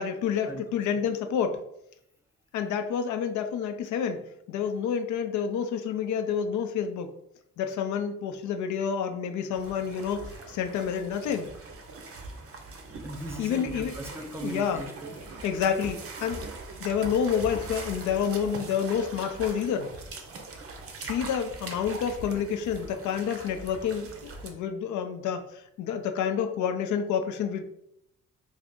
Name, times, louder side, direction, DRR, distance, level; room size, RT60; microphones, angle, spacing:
voice 1, 0.0-1.6 2.5-4.2 4.5-7.1 7.6-11.5 13.4-13.9 14.4-14.8 15.4-16.4 16.8-19.9 21.0-27.6, left 7 dB, 75° left, 7 dB, 0.5 m, -29 dB
sound 1, 9.5-24.5, right 3 dB, 50° right, 0.6 m, -41 dB
voice 2, 13.0-15.2, right 1 dB, 10° right, 3 dB, 0.4 m, -38 dB
2.7 x 2.5 x 3.5 m, 0.77 s
cardioid pair, 90°, 30 cm